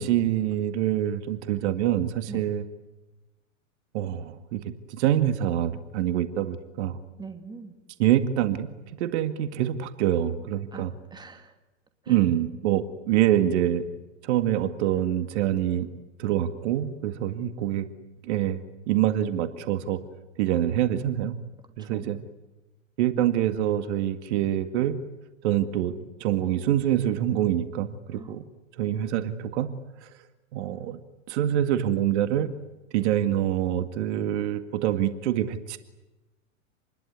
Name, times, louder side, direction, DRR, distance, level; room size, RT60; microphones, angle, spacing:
voice 1, 0.0-2.6 3.9-7.0 8.0-10.9 12.1-13.9 14.2-15.9 16.2-17.9 18.2-20.0 20.4-21.3 21.8-22.2 23.0-25.0 25.4-25.9 26.2-28.4 28.8-29.7 30.0-30.1 30.5-31.0 31.3-32.5 32.9-35.8, right 11 dB, 55° right, 10 dB, 2.1 m, -25 dB
voice 2, 7.2-7.7 10.7-10.8 11.1-11.5 12.0-12.2 21.8-22.1 28.1-28.4, right 5 dB, 10° right, 7 dB, 2.6 m, -41 dB
28.5 x 21.0 x 9.5 m, 1.1 s
hypercardioid pair, 115°, 39 cm